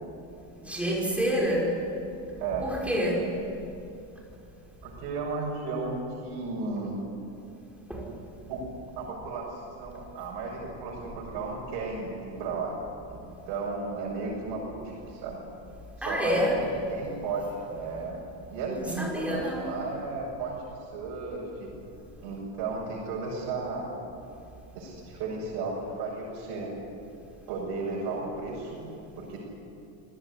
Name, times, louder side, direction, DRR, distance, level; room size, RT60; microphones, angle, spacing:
voice 1, 0.6-1.7 2.6-3.2 7.9-8.0 16.0-16.6 18.8-19.7, equal, 5° right, -3 dB, 5.8 m, -27 dB
voice 2, 4.8-7.0 8.5-8.7 9.0-12.8 13.4-15.4 16.0-18.2 18.5-21.7 22.2-23.9 24.7-26.7 27.5-29.4, right 3 dB, 85° right, -4 dB, 6.8 m, -34 dB
26.5 x 17.5 x 10.0 m, 2.7 s
cardioid pair, 165°, 39 cm